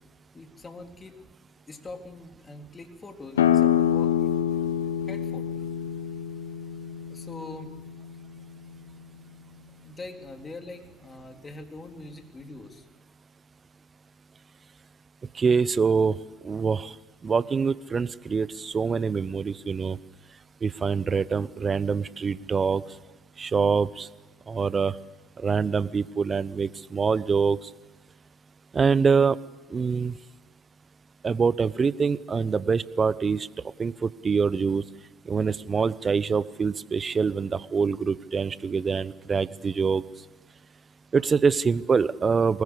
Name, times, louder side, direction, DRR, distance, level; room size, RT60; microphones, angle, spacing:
voice 1, 0.3-1.2 1.7-4.4 5.0-5.7 7.1-7.7 9.8-12.9, left 2 dB, 25° left, 4 dB, 3.5 m, -43 dB
sound 1, 3.4-8.7, left 9 dB, 80° left, 0.9 m, -26 dB
voice 2, 15.3-16.2 16.4-16.9 17.2-20.0 20.6-22.8 23.4-24.1 24.5-24.9 25.4-27.7 28.7-29.4 29.7-30.1 31.2-33.5 33.8-34.8 35.3-40.0 41.1-42.6, right 5 dB, 30° right, 19 dB, 0.8 m, -25 dB
24.0 x 20.5 x 8.3 m, 1.2 s
hypercardioid pair, 65°, 0 cm